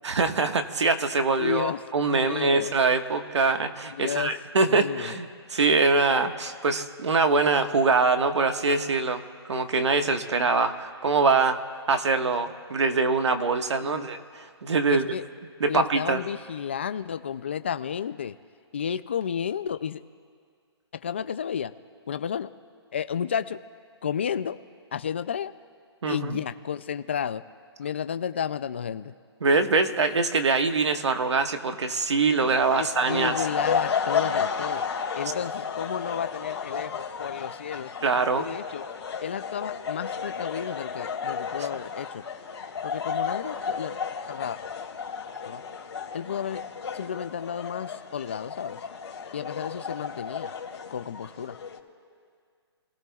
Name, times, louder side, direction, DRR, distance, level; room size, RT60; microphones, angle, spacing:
voice 1, 0.0-9.2 9.5-11.6 11.9-15.1 15.6-16.2 26.0-26.4 29.4-33.5 38.0-38.4 41.6-41.7, right 4 dB, 90° right, 6 dB, 1.5 m, -24 dB
voice 2, 1.4-1.8 2.1-2.7 3.9-4.3 4.7-5.2 13.8-14.1 14.9-15.2 15.7-18.4 18.7-20.0 20.9-21.7 22.1-22.5 22.9-23.6 24.0-24.6 24.9-25.5 26.1-27.4 27.8-29.1 32.8-34.8 35.2-37.9 38.4-38.8 39.2-42.2 42.8-44.0 44.3-44.6 45.4-45.6 46.1-46.6 46.9-48.8 49.3-50.5 50.9-51.6, left 8 dB, 25° left, 12 dB, 0.3 m, -32 dB
sound 1, 32.4-51.8, left 6 dB, 75° left, 2.4 m, -33 dB
28.5 x 17.0 x 2.4 m, 2.1 s
hypercardioid pair, 175°, 14 cm